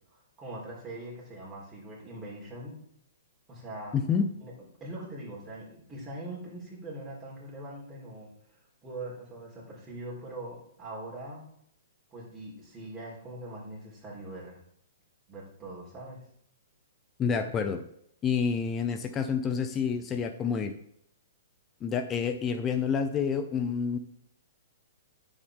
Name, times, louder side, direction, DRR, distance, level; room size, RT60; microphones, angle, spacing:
voice 1, 0.1-2.8 3.5-4.0 4.4-4.5 4.8-11.4 12.1-14.6 15.3-16.2, right 1 dB, 15° right, -4 dB, 3.9 m, -42 dB
voice 2, 3.9-4.3 17.2-17.8 18.2-20.7 21.8-24.0, left 6 dB, 20° left, 9 dB, 0.8 m, -28 dB
9.5 x 7.2 x 3.6 m, 0.70 s
hypercardioid pair, 130°, 0 cm